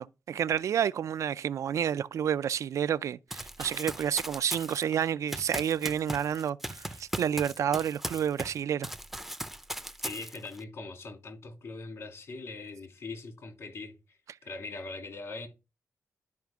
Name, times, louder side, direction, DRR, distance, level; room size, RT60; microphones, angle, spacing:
voice 1, 0.0-8.9, right 9 dB, 65° right, 0.4 m, -30 dB
Run, 3.3-8.6 8.8-10.6, right 1 dB, 5° right, 0.6 m, -38 dB
voice 2, 10.0-15.5, left 3 dB, 55° left, 2.7 m, -41 dB
12.0 x 5.0 x 3.5 m
wide cardioid pair, 160°, 6 cm